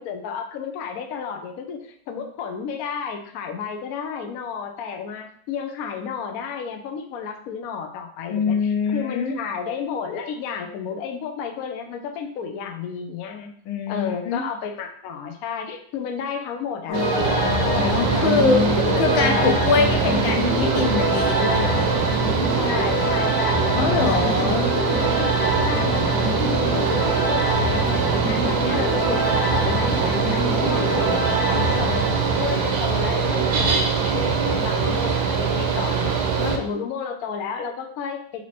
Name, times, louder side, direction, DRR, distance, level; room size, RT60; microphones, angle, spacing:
voice 1, 0.0-13.5 13.9-19.6 22.5-25.4 25.6-32.1 32.4-36.1 36.4-38.5, left 6 dB, 90° left, 4 dB, 0.7 m, -32 dB
voice 2, 8.3-9.4 13.6-14.4 17.5-18.6 19.0-22.0 23.8-24.6 31.0-31.7, left 5 dB, 70° left, 4 dB, 1.4 m, -24 dB
sound 1, 16.9-33.0, equal, 45° left, 1.2 m, -25 dB
Mechanical fan, 16.9-36.6, right 6 dB, 65° right, 1.0 m, -23 dB
4.2 x 3.0 x 4.2 m, 0.62 s
omnidirectional pair, 2.3 m